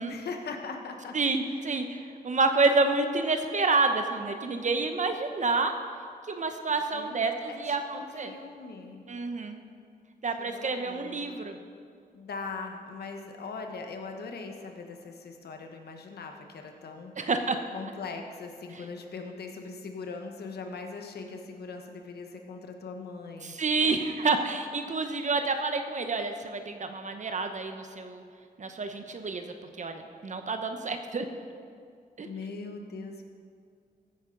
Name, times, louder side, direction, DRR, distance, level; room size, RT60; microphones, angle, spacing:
voice 1, 0.1-1.2 1.5-1.6 6.9-7.2 7.5-9.0 10.4-11.2 12.1-17.2 17.7-23.9 32.2-33.2, left 4 dB, 80° left, 4 dB, 1.2 m, -40 dB
voice 2, 1.1-5.7 6.3-8.3 9.1-9.6 10.2-11.6 17.2-17.6 23.4-28.2 28.6-29.5 29.8-31.2 32.2-32.3, right 3 dB, 50° right, 7 dB, 0.9 m, -28 dB
15.0 x 8.7 x 3.9 m, 2.2 s
cardioid pair, 70°, 16 cm